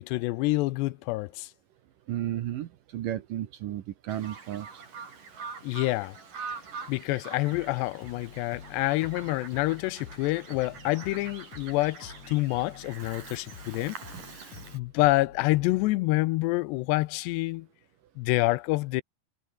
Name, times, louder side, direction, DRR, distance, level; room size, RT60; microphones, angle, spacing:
voice 1, 0.0-1.5 5.6-6.2 6.9-14.0 14.7-17.7 18.2-19.0, left 20 dB, 85° left, 2.7 m, -27 dB
voice 2, 2.1-4.8, right 12 dB, 65° right, 2.3 m, -33 dB
Bird vocalization bird call bird song, 4.1-14.8, right 5 dB, 50° right, 6.1 m, -44 dB
sound 1, 7.5-16.0, left 7 dB, 45° left, 3.4 m, -49 dB
omnidirectional pair, 5.0 m